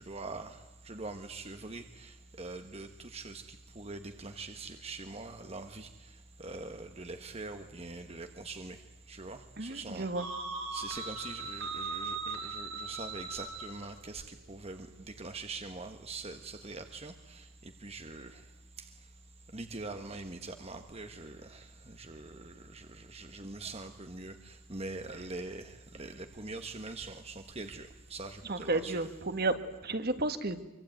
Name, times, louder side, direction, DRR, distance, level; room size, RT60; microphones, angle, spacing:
voice 1, 0.0-10.3 10.7-18.4 18.8-18.9 19.5-29.1, right 3 dB, 30° right, 1.3 m, -43 dB
voice 2, 9.6-10.2 28.5-29.5 29.8-30.6, right 2 dB, 45° right, 1.7 m, -32 dB
sound 1, 10.2-13.9, right 3 dB, 75° right, 5.7 m, -39 dB
25.5 x 24.5 x 9.3 m
head